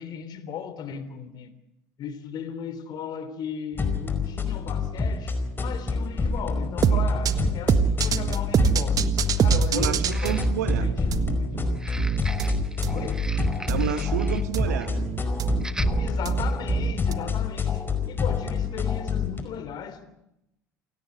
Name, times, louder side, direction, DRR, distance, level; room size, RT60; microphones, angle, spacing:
voice 1, 0.0-1.5 2.0-5.3 5.6-11.8 12.9-13.3 16.0-20.0, left 8 dB, 55° left, 3.4 m, -37 dB
sound 1, 3.7-19.4, left 5 dB, 25° left, 5.0 m, -28 dB
sound 2, 6.4-6.5 6.9-7.0 10.0-10.8 11.7-14.5 14.8-15.0 15.6-15.9 16.5-16.6, right 1 dB, 5° right, 1.4 m, -40 dB
sound 3, 6.8-17.1, right 7 dB, 45° right, 1.7 m, -24 dB
voice 2, 9.7-10.9 13.7-15.1, right 9 dB, 80° right, 1.9 m, -30 dB
28.5 x 17.0 x 8.1 m
hypercardioid pair, 70°, 9 cm